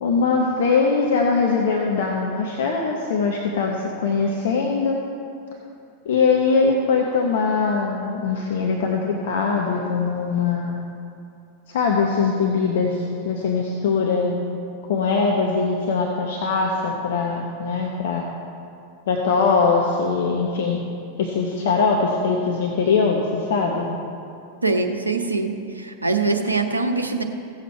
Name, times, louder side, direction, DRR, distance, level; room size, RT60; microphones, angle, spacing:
voice 1, 0.0-5.0 6.0-10.8 11.7-14.3 14.9-18.2 19.1-20.8 21.2-23.9, left 4 dB, 55° left, 0 dB, 1.0 m, -21 dB
voice 2, 24.6-27.2, right 3 dB, 85° right, 5 dB, 0.8 m, -23 dB
16.0 x 7.3 x 4.4 m, 2.5 s
figure-of-eight pair, 90°, 0 cm